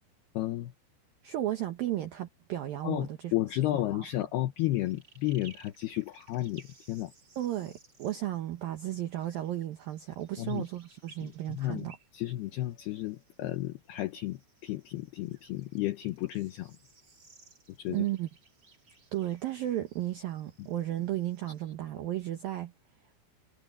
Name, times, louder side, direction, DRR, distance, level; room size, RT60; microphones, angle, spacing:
voice 1, 0.3-0.7 2.8-7.1 10.4-10.6 11.2-11.9 12.1-16.8 17.8-18.1, left 16 dB, 90° left, 2.2 m, -33 dB
voice 2, 1.2-3.3 3.7-4.1 7.4-12.0 17.9-18.3 19.1-22.7, right 13 dB, 80° right, 2.1 m, -34 dB
sound 1, 4.6-21.6, right 4 dB, 25° right, 3.3 m, -61 dB
omnidirectional pair, 5.9 m